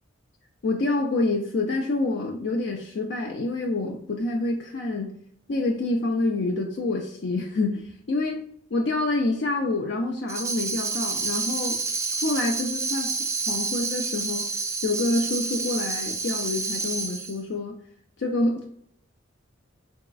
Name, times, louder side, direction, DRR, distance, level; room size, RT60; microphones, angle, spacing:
voice 1, 0.6-5.2 5.5-8.4 8.7-11.8 12.2-13.1 13.5-14.5 14.8-17.8 18.2-18.6, left 2 dB, 60° left, 1 dB, 0.4 m, -27 dB
Tambourine, 10.3-17.4, right 4 dB, 15° right, 0.3 m, -29 dB
3.9 x 3.5 x 2.3 m, 0.67 s
head